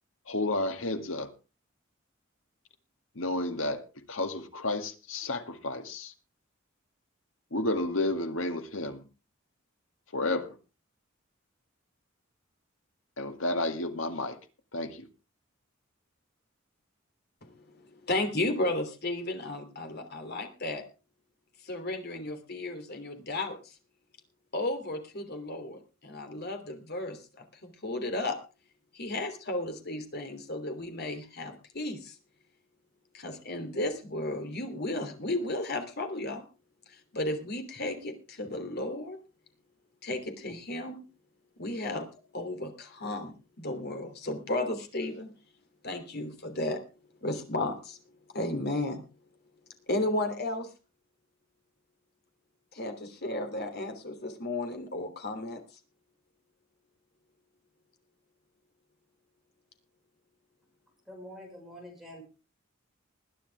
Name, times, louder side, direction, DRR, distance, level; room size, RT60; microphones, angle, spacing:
voice 1, 0.3-1.3 3.2-6.1 7.5-9.0 10.1-10.6 13.2-14.4 14.7-15.1, left 2 dB, 75° left, 2.1 m, -31 dB
voice 2, 17.4-20.8 21.6-23.6 24.5-27.2 27.6-28.4 28.9-32.1 33.1-36.4 37.1-39.2 40.0-41.0 41.6-42.1 42.3-45.3 45.8-46.8 47.2-48.0 48.3-49.0 49.9-50.7 52.7-55.6, left 2 dB, 50° left, 3.1 m, -34 dB
voice 3, 61.1-62.2, equal, ahead, 5.8 m, -46 dB
20.5 x 10.0 x 3.5 m
head